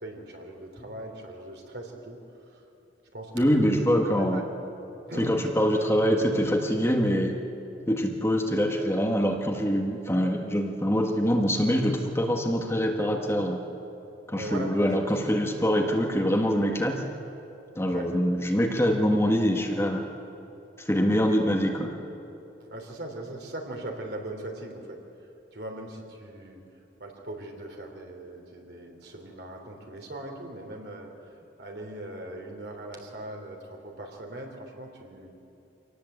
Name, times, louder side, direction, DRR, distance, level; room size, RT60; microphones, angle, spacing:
voice 1, 0.0-2.2 2.5-2.6 3.1-3.8 4.1-4.4 5.1-5.4 14.3-15.1 15.4-15.5 17.9-18.1 21.0-21.2 22.6-25.0 25.5-26.6 27.0-31.1 31.6-35.3, right 1 dB, 60° right, 2 dB, 3.4 m, -40 dB
voice 2, 3.3-4.4 5.2-7.3 7.9-13.6 14.3-17.0 17.7-20.0 20.8-21.9, equal, 15° left, 2 dB, 1.5 m, -24 dB
25.5 x 18.0 x 8.0 m, 2.9 s
head